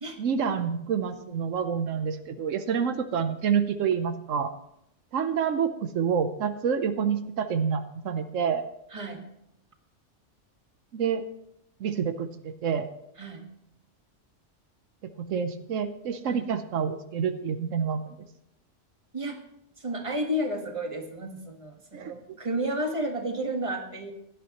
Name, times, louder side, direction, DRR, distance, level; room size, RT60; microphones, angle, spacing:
voice 1, 0.2-4.5 5.1-8.6 10.9-11.2 11.8-12.9 15.0-18.2 21.9-22.1, right 7 dB, 85° right, 9 dB, 1.2 m, -28 dB
voice 2, 8.9-9.3 13.2-13.5 16.3-16.5 19.1-19.4 19.8-24.1, right 1 dB, 25° right, 3 dB, 1.6 m, -32 dB
17.0 x 11.5 x 3.0 m, 0.78 s
omnidirectional pair, 1.3 m